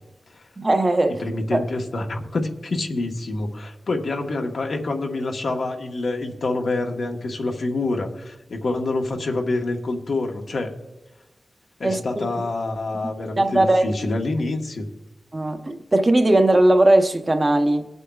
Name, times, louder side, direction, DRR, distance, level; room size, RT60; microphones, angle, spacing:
voice 1, 0.6-1.2 1.5-1.6 11.8-12.3 13.4-13.9 15.3-17.9, right 1 dB, 30° right, 0.8 m, -18 dB
voice 2, 1.2-10.7 11.8-14.9, left 2 dB, 80° left, 1.3 m, -26 dB
22.0 x 8.1 x 2.4 m
wide cardioid pair, 115°, 0 cm